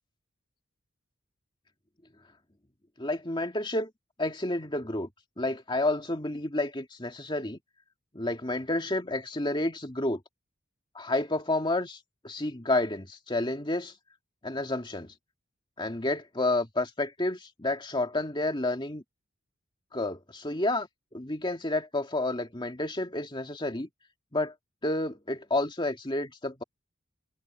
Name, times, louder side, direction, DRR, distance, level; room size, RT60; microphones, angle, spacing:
voice 1, 3.0-3.9 4.2-5.1 5.4-7.6 8.1-10.2 10.9-12.0 12.2-13.9 14.4-15.1 15.8-19.0 19.9-23.9 24.3-24.5 24.8-26.6, left 2 dB, 25° left, 2.3 m, -30 dB
head